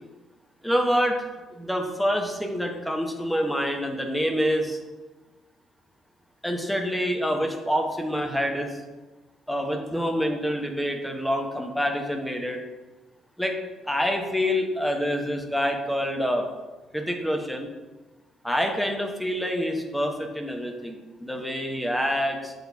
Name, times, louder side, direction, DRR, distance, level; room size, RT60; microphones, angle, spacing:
voice 1, 0.6-1.2 1.5-4.8 6.4-8.8 9.5-12.6 13.4-13.6 13.8-16.4 16.9-17.7 18.4-22.5, equal, ahead, 3 dB, 1.1 m, -26 dB
6.9 x 4.0 x 4.7 m, 1.2 s
figure-of-eight pair, 45°, 0 cm